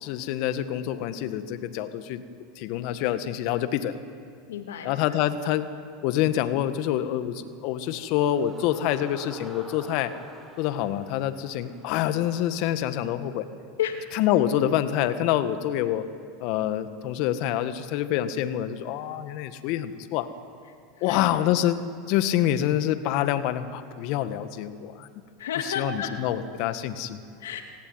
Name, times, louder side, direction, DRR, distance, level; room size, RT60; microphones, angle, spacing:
voice 1, 0.0-2.2 2.6-4.0 4.9-5.7 6.0-10.1 10.6-13.5 14.2-16.0 16.4-20.3 21.0-21.8 22.1-25.1 25.8-27.2, left 11 dB, 60° left, 11 dB, 1.7 m, -26 dB
voice 2, 4.5-4.9 13.8-14.0 21.0-21.3 25.4-26.2 27.4-27.6, left 8 dB, 85° left, 5 dB, 2.9 m, -31 dB
sound 1, 7.6-13.1, right 1 dB, ahead, 5.0 m, -48 dB
27.0 x 18.0 x 9.6 m, 2.4 s
hypercardioid pair, 105°, 0 cm